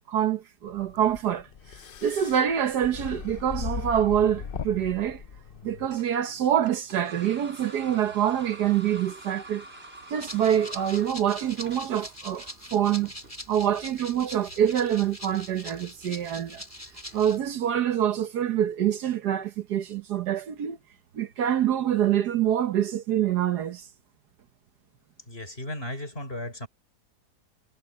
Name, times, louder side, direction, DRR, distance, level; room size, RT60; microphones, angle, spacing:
voice 1, 0.1-1.5 2.0-5.2 5.6-9.6 10.1-13.1 13.5-16.6 17.1-20.8 21.1-23.9, right 10 dB, 75° right, 1.6 m, -25 dB
sound 1, 0.7-5.9, left 7 dB, 50° left, 0.6 m, -38 dB
sound 2, 5.8-17.7, right 2 dB, 35° right, 5.9 m, -49 dB
Rattle (instrument), 10.2-17.4, equal, 10° left, 4.6 m, -42 dB
voice 2, 25.3-26.7, left 1 dB, 35° left, 6.5 m, -35 dB
omnidirectional pair, 1.8 m